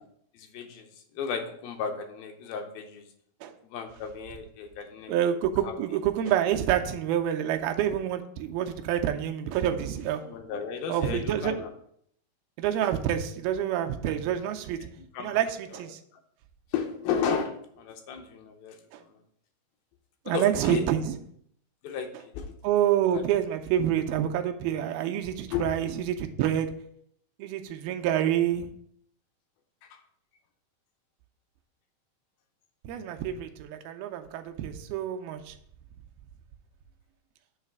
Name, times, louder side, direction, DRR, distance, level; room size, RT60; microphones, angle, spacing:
voice 1, 0.3-0.9 1.2-3.1 3.6-5.1 5.6-5.7 10.2-11.7 15.1-15.4 16.7-18.8 20.3-20.8 21.8-22.1 22.3-22.5 23.1-23.2 25.5-25.7 29.8-30.0, left 6 dB, 80° left, 5 dB, 2.5 m, -33 dB
voice 2, 5.1-10.2 10.9-11.5 12.6-14.9 15.2-16.0 18.9-19.0 20.3-21.2 22.6-26.7 27.4-28.7 32.8-35.6, right 10 dB, 85° right, 6 dB, 2.4 m, -27 dB
7.5 x 3.2 x 5.9 m, 0.67 s
omnidirectional pair, 4.3 m